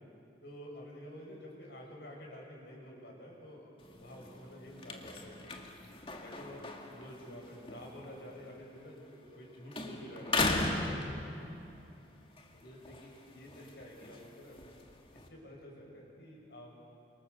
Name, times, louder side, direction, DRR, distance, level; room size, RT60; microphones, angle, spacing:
voice 1, 0.4-3.7 3.9-5.6 6.2-11.5 12.5-14.6 15.1-16.8, equal, 60° left, -2 dB, 7.2 m, -50 dB
sound 1, 3.8-9.4 9.7-11.7 12.2-15.3, left 2 dB, 30° left, 2.1 m, -38 dB
29.0 x 27.0 x 7.1 m, 2.7 s
head